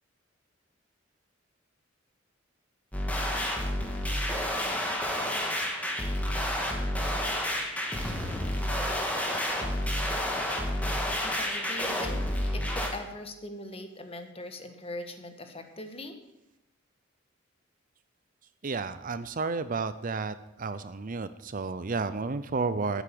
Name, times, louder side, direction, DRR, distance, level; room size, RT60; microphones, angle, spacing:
sound 1, 2.9-12.9, left 1 dB, 10° left, 2.1 m, -30 dB
voice 1, 11.2-16.2, left 1 dB, 30° left, 6 dB, 1.5 m, -41 dB
voice 2, 18.6-23.0, right 4 dB, 40° right, 13 dB, 0.6 m, -32 dB
13.5 x 8.3 x 7.7 m, 0.93 s
head